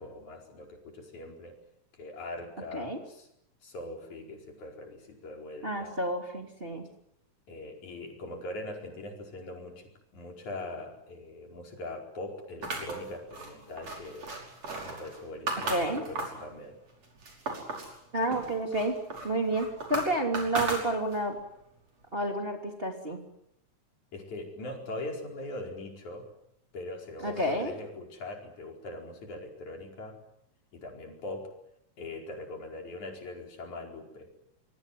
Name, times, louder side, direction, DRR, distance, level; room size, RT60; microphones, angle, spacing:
voice 1, 0.0-1.6 1.9-3.3 3.6-6.0 7.5-14.4 14.8-16.8 20.4-20.5 24.1-26.3 26.7-30.2 30.7-31.6 32.0-34.3, left 2 dB, 70° left, 2 dB, 6.2 m, -41 dB
voice 2, 5.6-6.8 15.7-16.0 18.1-19.0 19.2-21.4 22.1-23.2 27.2-27.7, right 1 dB, 20° right, 3 dB, 3.1 m, -30 dB
sound 1, 12.6-16.5 16.9-18.0 18.3-21.3, right 3 dB, 55° right, 6.5 m, -36 dB
26.5 x 23.0 x 7.8 m, 0.75 s
omnidirectional pair, 3.5 m